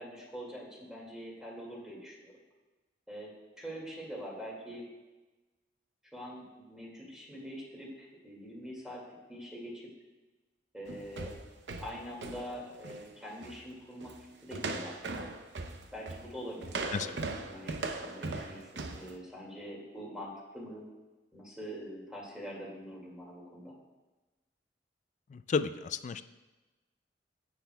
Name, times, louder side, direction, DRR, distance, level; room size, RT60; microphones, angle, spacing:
voice 1, 0.0-2.3 3.1-3.3 3.6-4.9 6.1-9.0 9.3-9.9 10.7-11.3 11.8-15.3 15.9-20.8 21.3-23.7, equal, 5° right, -4 dB, 2.1 m, -44 dB
sound 1, 10.9-13.1 13.4-13.6 14.0-14.2 14.5-19.1, right 3 dB, 75° right, 0.7 m, -39 dB
voice 2, 25.3-26.2, left 5 dB, 45° left, 13 dB, 0.3 m, -32 dB
16.5 x 6.0 x 2.3 m, 1.2 s
head